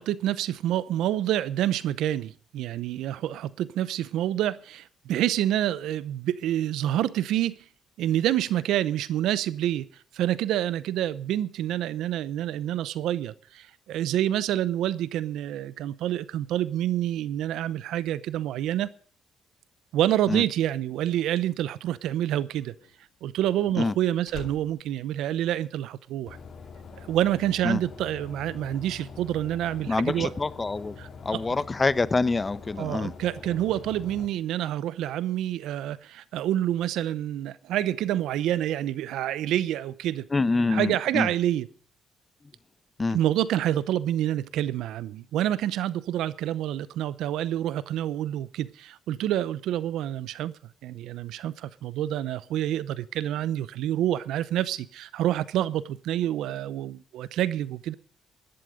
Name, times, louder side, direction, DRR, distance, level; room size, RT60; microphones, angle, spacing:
voice 1, 0.0-7.6 8.0-9.9 10.1-18.9 19.9-22.7 23.2-26.4 27.1-30.3 31.0-31.4 32.8-40.3 40.7-41.7 43.1-50.5 50.8-57.9, right 12 dB, 85° right, 0.7 m, -27 dB
Slam, 22.0-26.1 26.3-26.8, left 8 dB, 75° left, 1.9 m, -48 dB
sound 1, 26.3-34.3, left 5 dB, 50° left, 3.4 m, -44 dB
voice 2, 29.9-30.9 31.2-33.1 40.3-41.3 43.0-43.2, left 3 dB, 25° left, 0.7 m, -26 dB
16.0 x 11.5 x 5.1 m
cardioid pair, 90°, 0 cm